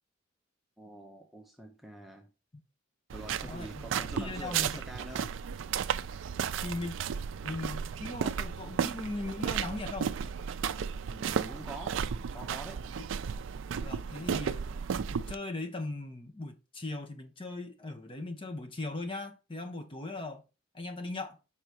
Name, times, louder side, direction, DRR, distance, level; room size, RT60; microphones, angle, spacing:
voice 1, 0.8-2.3 3.1-5.3 11.1-12.9, right 1 dB, ahead, 0.6 m, -46 dB
sound 1, 3.1-15.3, right 7 dB, 70° right, 0.3 m, -34 dB
voice 2, 3.4-4.8 6.6-7.0 7.4-10.2 13.0-13.1 13.8-14.8 15.1-20.4 20.7-21.4, left 2 dB, 25° left, 0.9 m, -39 dB
5.7 x 3.9 x 4.6 m
head